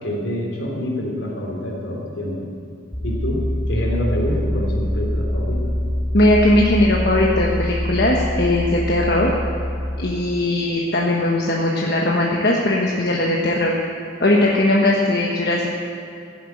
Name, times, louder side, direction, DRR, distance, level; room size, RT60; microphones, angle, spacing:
voice 1, 0.0-2.4 3.0-5.7, equal, 70° left, -1 dB, 3.4 m, -26 dB
sound 1, 2.9-10.0, left 1 dB, 10° left, 0.8 m, -24 dB
voice 2, 6.1-9.3 10.0-13.8 14.2-15.7, left 1 dB, 55° left, -2 dB, 1.3 m, -19 dB
15.0 x 7.9 x 8.6 m, 2.6 s
head